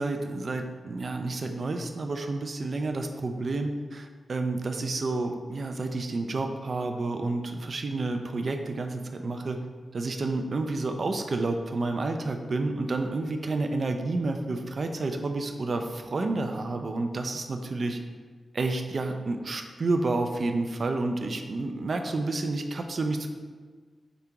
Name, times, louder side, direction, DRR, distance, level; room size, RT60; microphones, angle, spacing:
voice 1, 0.0-9.6 9.9-18.0 18.5-23.3, right 2 dB, 40° right, 5 dB, 0.3 m, -30 dB
4.9 x 2.8 x 3.4 m, 1.5 s
wide cardioid pair, 175°, 0 cm